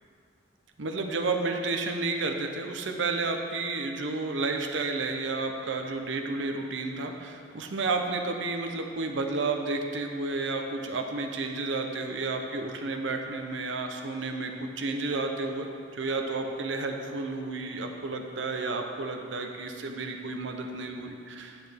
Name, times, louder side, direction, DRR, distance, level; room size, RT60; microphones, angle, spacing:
voice 1, 0.8-21.6, right 3 dB, 80° right, 4 dB, 0.7 m, -31 dB
8.7 x 8.0 x 3.5 m, 2.4 s
head